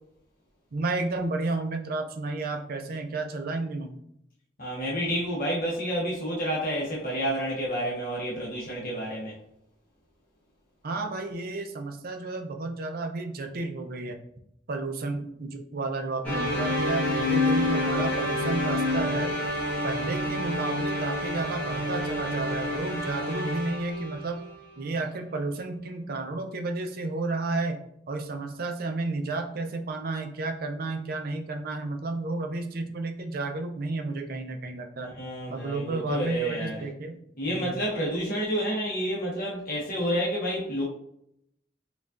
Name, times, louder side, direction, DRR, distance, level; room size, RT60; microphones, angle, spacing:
voice 1, 0.7-4.0 10.8-14.2 14.7-19.3 19.8-24.4 24.8-27.8 28.1-35.1 35.5-37.2 37.5-37.8, right 3 dB, 50° right, 5 dB, 0.4 m, -32 dB
voice 2, 4.6-9.3 35.0-36.8 37.4-40.8, equal, 50° left, -4 dB, 0.9 m, -29 dB
sound 1, 16.2-24.6, left 1 dB, 10° left, 1.2 m, -28 dB
5.1 x 2.3 x 2.4 m, 0.73 s
head